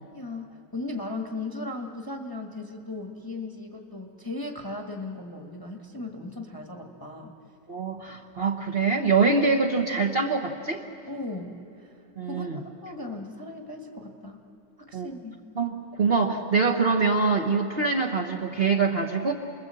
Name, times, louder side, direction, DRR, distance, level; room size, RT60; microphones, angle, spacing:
voice 1, 0.1-7.3 11.1-11.9 12.3-14.4 14.8-15.4, left 2 dB, 15° left, 2 dB, 1.3 m, -37 dB
voice 2, 7.7-10.8 12.2-12.6 14.9-15.1 15.6-19.3, right 4 dB, 35° right, -1 dB, 1.1 m, -24 dB
29.5 x 21.0 x 7.6 m, 2.7 s
omnidirectional pair, 2.0 m